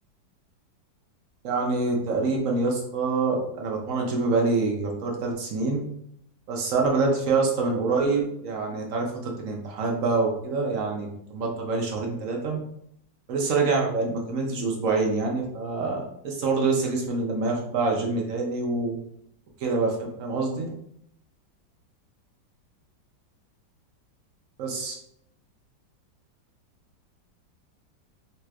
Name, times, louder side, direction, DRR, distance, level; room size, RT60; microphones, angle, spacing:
voice 1, 1.4-5.8 6.5-12.6 13.3-19.0 19.6-20.7 24.6-25.0, right 3 dB, 65° right, 0 dB, 0.8 m, -26 dB
4.1 x 3.0 x 2.3 m, 0.72 s
omnidirectional pair, 2.0 m